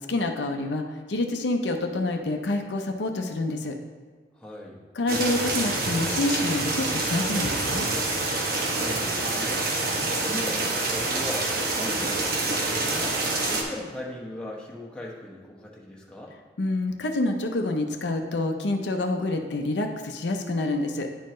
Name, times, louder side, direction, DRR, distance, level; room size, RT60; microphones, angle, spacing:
voice 1, 0.0-3.8 5.0-7.9 16.6-21.1, left 2 dB, 80° left, 4 dB, 0.6 m, -27 dB
voice 2, 4.3-4.8 8.6-9.7 10.2-16.3, left 1 dB, 5° left, -4 dB, 0.9 m, -39 dB
sound 1, 5.1-13.6, right 2 dB, 55° right, 0.9 m, -27 dB
10.0 x 4.4 x 3.1 m, 1.5 s
head